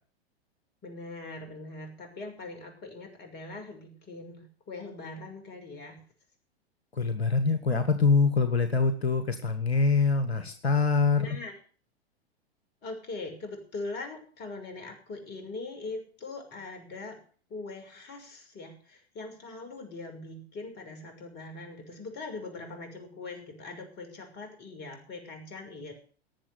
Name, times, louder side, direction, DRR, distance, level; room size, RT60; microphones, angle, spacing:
voice 1, 0.8-6.0 11.2-11.5 12.8-17.2 17.5-25.9, left 3 dB, 30° left, 5 dB, 6.2 m, -41 dB
voice 2, 6.9-11.4, left 4 dB, 75° left, 9 dB, 1.7 m, -24 dB
19.0 x 7.4 x 8.0 m, 0.42 s
figure-of-eight pair, 100°, 32 cm